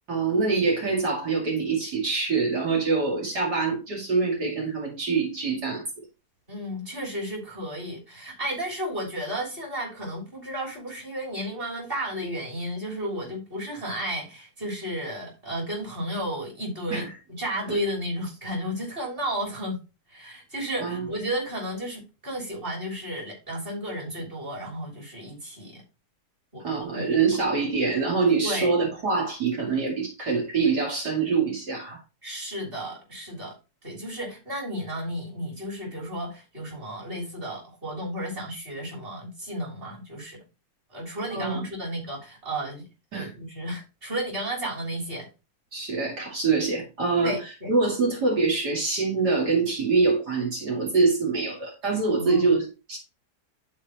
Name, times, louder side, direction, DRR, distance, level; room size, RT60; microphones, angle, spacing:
voice 1, 0.1-6.0 16.9-17.1 17.7-17.8 20.8-21.1 26.6-32.0 41.3-41.6 43.1-43.3 45.7-53.0, right 4 dB, 75° right, 3.0 m, -25 dB
voice 2, 6.5-19.8 20.1-25.8 26.5-27.1 28.4-28.7 32.2-33.6 33.8-40.4 40.9-45.3 47.2-47.7 52.2-52.5, equal, 35° right, 3.5 m, -33 dB
11.5 x 4.5 x 3.0 m
omnidirectional pair, 1.7 m